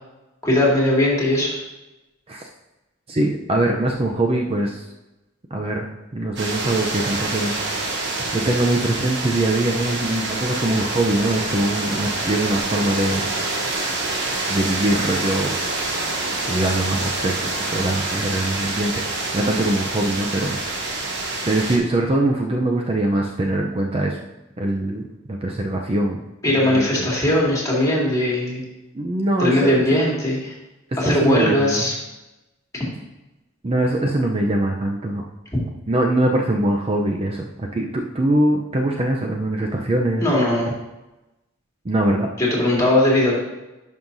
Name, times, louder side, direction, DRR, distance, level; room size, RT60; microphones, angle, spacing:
voice 1, 0.4-1.5 26.4-28.6 29.4-30.5 31.0-31.9 32.7-32.8 40.2-40.7 42.4-43.4, left 1 dB, 15° left, -4 dB, 2.1 m, -19 dB
voice 2, 3.1-4.8 5.5-5.9 6.1-7.6 8.3-13.3 14.5-15.6 16.5-20.6 21.5-24.2 24.6-25.0 25.3-26.2 26.6-27.1 28.9-30.0 31.0-31.9 33.6-35.2 35.9-40.2 41.9-42.3, right 1 dB, 30° right, 1 dB, 0.5 m, -22 dB
sound 1, 6.4-21.8, right 2 dB, 60° right, 1.3 m, -26 dB
10.5 x 5.5 x 2.6 m, 1.0 s
head